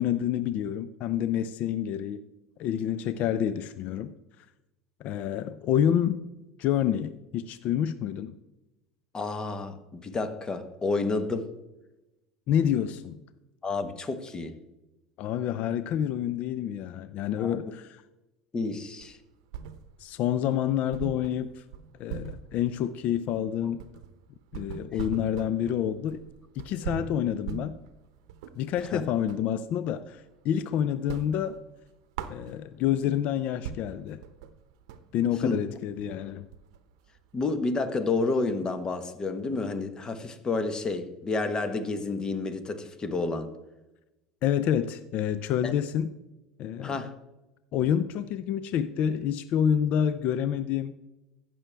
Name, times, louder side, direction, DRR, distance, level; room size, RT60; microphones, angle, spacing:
voice 1, 0.0-2.2 2.6-4.1 5.0-6.2 6.6-8.4 12.5-13.2 15.2-18.0 20.0-21.6 22.0-23.8 24.5-26.2 26.6-27.8 28.6-31.6 32.3-34.2 35.1-36.5 44.4-46.1 46.6-47.1 47.7-50.9, left 9 dB, 55° left, 0.4 m, -28 dB
voice 2, 9.1-11.5 13.6-14.6 17.4-17.6 18.5-19.2 24.9-25.0 28.8-29.1 35.4-35.6 37.3-43.5 45.6-45.7 46.8-47.1, left 3 dB, 25° left, 1.1 m, -30 dB
sound 1, 19.0-20.2 20.5-20.6 20.9-29.5 29.9-30.6 30.9-32.9 33.3-33.4 33.6-37.8, right 8 dB, 80° right, 0.7 m, -41 dB
15.0 x 6.2 x 3.4 m
supercardioid pair, 100°, 3 cm